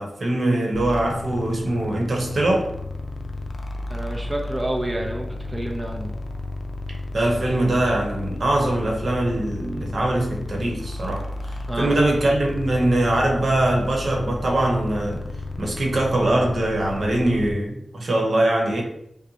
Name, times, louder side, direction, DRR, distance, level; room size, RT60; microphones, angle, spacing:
voice 1, 0.0-2.7 7.1-15.2 15.6-18.8, right 1 dB, 65° right, 0 dB, 1.0 m, -22 dB
sound 1, 0.7-17.5, left 2 dB, 50° left, 0.5 m, -33 dB
voice 2, 3.9-6.2 11.7-11.9, right 1 dB, 25° right, 0 dB, 0.6 m, -29 dB
5.8 x 2.2 x 2.8 m, 0.79 s
cardioid pair, 55°, 0 cm